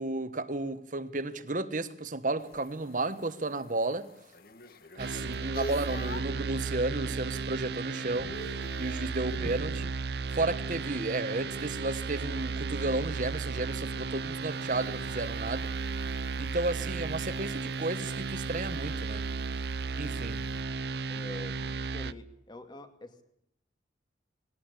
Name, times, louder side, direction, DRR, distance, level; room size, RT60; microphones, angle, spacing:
voice 1, 0.0-4.1 5.0-9.9 10.3-15.7 16.4-19.2 20.0-20.4, right 2 dB, 45° right, 1.4 m, -33 dB
sound 1, 2.4-6.4 6.9-7.4 7.6-9.7 12.2-20.6, left 1 dB, 55° left, 1.8 m, -48 dB
sound 2, 5.0-22.1, right 4 dB, 60° right, 0.7 m, -34 dB
voice 2, 21.1-23.2, left 1 dB, 25° left, 2.3 m, -46 dB
20.0 x 18.0 x 8.3 m
head